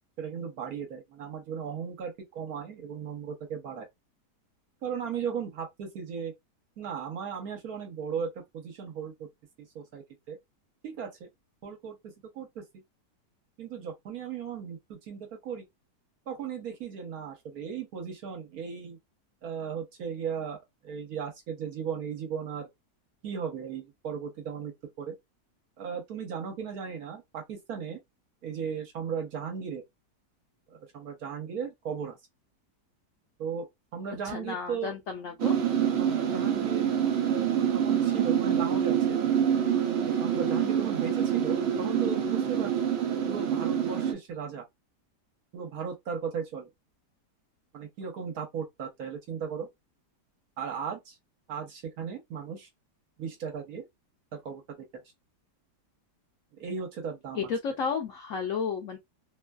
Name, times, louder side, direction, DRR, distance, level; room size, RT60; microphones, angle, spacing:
voice 1, 0.2-3.9 4.8-6.3 6.8-9.3 9.6-10.4 10.8-11.3 11.6-12.8 13.6-15.7 16.3-19.0 19.4-20.6 20.8-22.7 23.2-25.2 25.8-28.0 28.4-29.8 30.7-32.2 33.4-33.7 33.9-34.9 36.0-39.3 40.1-42.9 43.3-44.6 45.5-46.7 47.7-49.7 50.6-51.2 51.5-52.7 53.2-53.8 54.3-55.0 56.5-57.5, right 7 dB, 65° right, 1.3 m, -36 dB
voice 2, 34.2-35.6 57.3-59.0, left 6 dB, 70° left, 0.8 m, -32 dB
sound 1, 35.4-44.1, right 9 dB, 80° right, 0.5 m, -26 dB
3.0 x 2.4 x 2.2 m
omnidirectional pair, 1.8 m